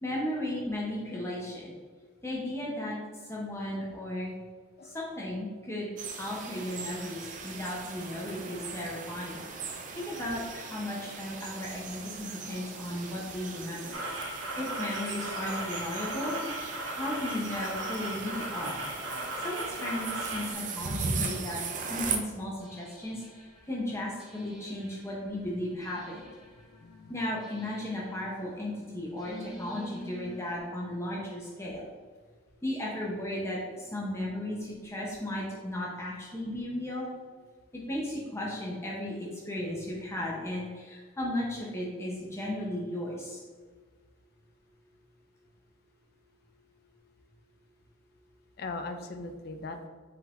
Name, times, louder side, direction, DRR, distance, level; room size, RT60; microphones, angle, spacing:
voice 1, 0.0-1.7 2.2-3.0 3.3-4.3 4.8-5.9 6.2-14.0 14.6-16.4 17.0-18.8 19.4-21.6 21.9-23.2 23.7-26.3 27.1-31.9 32.6-37.1 37.7-43.4, left 1 dB, 15° left, -4 dB, 0.7 m, -35 dB
sound 1, 6.0-22.1, right 5 dB, 40° right, 0.4 m, -39 dB
sound 2, 13.9-20.5, right 1 dB, 85° right, 1.0 m, -36 dB
sound 3, 22.6-30.6, left 1 dB, 5° right, 1.0 m, -49 dB
voice 2, 26.6-27.1 48.6-49.9, left 3 dB, 50° left, 7 dB, 0.4 m, -39 dB
5.6 x 3.8 x 2.5 m, 1.5 s
head